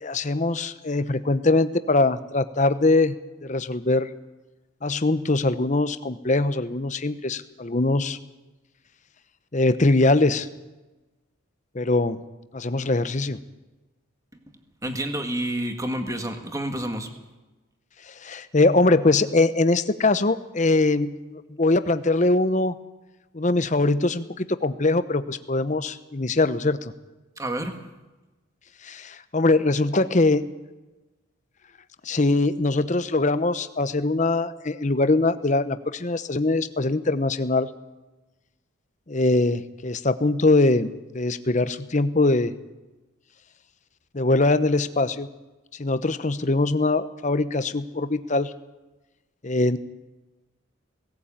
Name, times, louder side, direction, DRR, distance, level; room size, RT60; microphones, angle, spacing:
voice 1, 0.0-3.1 3.4-4.1 4.8-8.2 9.5-10.5 11.7-12.2 12.5-13.4 18.2-22.7 23.3-26.9 28.8-30.4 32.0-37.7 39.1-42.5 44.1-45.3 45.8-48.5 49.4-49.8, left 2 dB, 35° left, 12 dB, 0.8 m, -22 dB
voice 2, 14.8-17.1 27.4-27.8, right 1 dB, 15° right, 6 dB, 1.8 m, -29 dB
17.5 x 17.0 x 8.8 m, 1.1 s
head